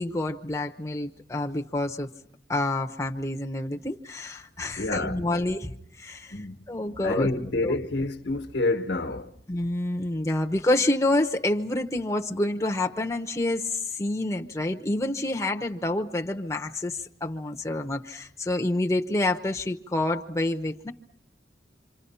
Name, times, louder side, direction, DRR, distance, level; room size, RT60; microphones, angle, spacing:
voice 1, 0.0-2.1 2.5-5.7 6.0-7.3 7.6-7.7 9.5-20.9, left 2 dB, 15° left, 0.9 m, -28 dB
voice 2, 4.8-5.2 6.3-6.6 7.0-9.3, left 2 dB, 75° left, 1.3 m, -28 dB
27.5 x 26.0 x 5.6 m
head